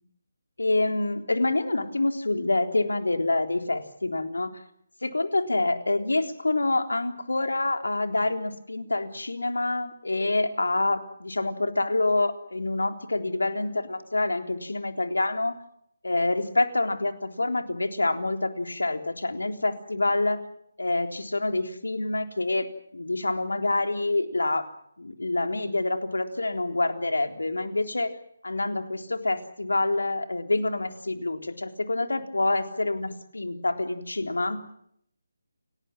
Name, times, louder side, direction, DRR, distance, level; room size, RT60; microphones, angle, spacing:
voice 1, 0.6-4.5 5.0-15.5 16.0-20.4 20.8-24.7 25.0-28.1 28.4-34.6, left 2 dB, 80° left, 6 dB, 3.7 m, -27 dB
29.0 x 19.0 x 7.5 m, 0.70 s
figure-of-eight pair, 155°, 0 cm